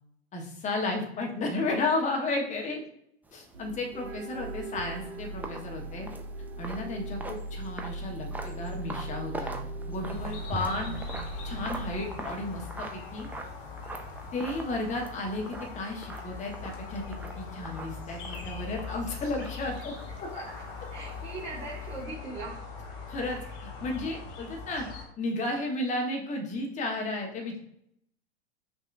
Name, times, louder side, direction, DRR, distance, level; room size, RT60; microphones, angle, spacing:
voice 1, 0.3-2.8 3.3-6.1 6.6-9.5 9.9-10.9 11.4-13.3 14.3-19.9 20.2-20.4 23.1-24.9 25.2-27.6, left 2 dB, 20° left, 1 dB, 1.0 m, -33 dB
sound 1, 3.2-22.0, right 2 dB, 5° right, 0.3 m, -44 dB
sound 2, 3.5-11.9, right 2 dB, 85° right, 0.6 m, -39 dB
sound 3, 10.1-25.1, left 5 dB, 50° left, 1.4 m, -41 dB
voice 2, 20.3-20.6 20.9-22.6 27.4-27.6, right 3 dB, 35° right, -5 dB, 1.4 m, -41 dB
5.9 x 2.7 x 2.5 m, 0.73 s
hypercardioid pair, 95°, 32 cm